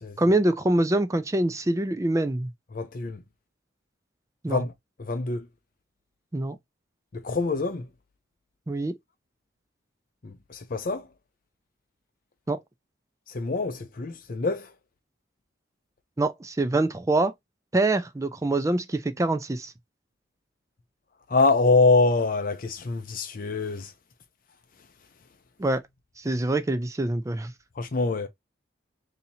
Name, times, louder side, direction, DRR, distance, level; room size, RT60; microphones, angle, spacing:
voice 1, 0.2-2.5 4.4-4.6 6.3-6.6 8.7-9.0 12.5-12.6 16.2-17.3 17.7-19.7 25.6-25.8 26.2-27.5, right 2 dB, 15° right, 0.4 m, -25 dB
voice 2, 2.7-3.2 4.5-4.7 5.0-5.5 7.1-7.9 10.2-11.1 13.3-14.7 21.3-23.9 27.8-28.3, left 3 dB, 45° left, 0.5 m, -25 dB
2.8 x 2.8 x 4.1 m
head